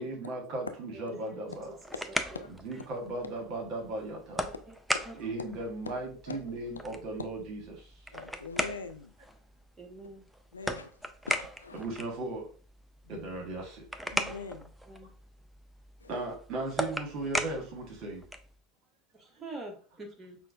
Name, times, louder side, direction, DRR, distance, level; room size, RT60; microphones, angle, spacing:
voice 1, 0.0-1.8 2.5-4.5 5.2-7.9 11.7-12.5 13.1-13.9 16.1-18.2, right 2 dB, 45° right, 2 dB, 1.2 m, -37 dB
voice 2, 0.9-1.4 2.3-2.4 4.7-4.8 5.1-5.2 9.8-10.2 14.9-15.1 19.1-20.4, right 2 dB, 20° right, 3 dB, 1.0 m, -45 dB
sound 1, 1.5-18.6, equal, 5° right, 0.4 m, -39 dB
voice 3, 6.3-6.6 8.1-9.1 10.5-11.0 11.3-11.9 14.1-14.7 16.0-16.1, left 4 dB, 80° left, 7 dB, 0.3 m, -42 dB
5.7 x 2.1 x 2.4 m, 0.40 s
figure-of-eight pair, 75°, 0 cm